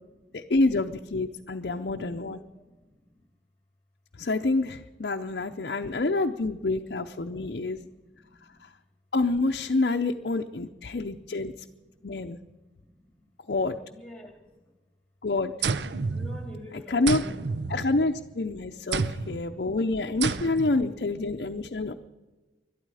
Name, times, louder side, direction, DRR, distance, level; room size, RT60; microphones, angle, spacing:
voice 1, 0.3-2.4 4.2-7.8 9.1-11.5 12.0-12.4 13.5-13.8 15.2-15.5 16.9-17.2 17.7-21.9, left 2 dB, 60° left, 3 dB, 0.6 m, -27 dB
voice 2, 2.1-2.5 13.8-14.3 16.1-17.5 19.0-19.1, left 1 dB, 5° left, 4 dB, 2.7 m, -45 dB
sound 1, 15.6-16.7 17.1-18.3 18.9-19.5 20.2-20.8, right 4 dB, 70° right, 0.6 m, -30 dB
22.0 x 12.0 x 4.9 m, 1.2 s
head